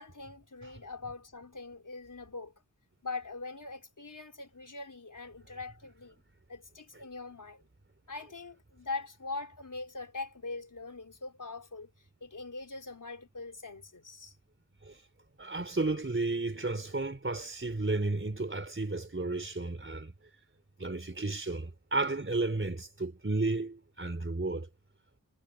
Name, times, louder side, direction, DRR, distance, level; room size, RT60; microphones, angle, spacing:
voice 1, 0.0-2.5 3.0-6.1 6.5-7.6 8.1-11.9 12.2-14.4, left 3 dB, 65° left, 4.6 m, -42 dB
voice 2, 15.4-20.1 20.8-24.7, right 2 dB, 35° right, 4.3 m, -33 dB
wide cardioid pair, 55°, 33 cm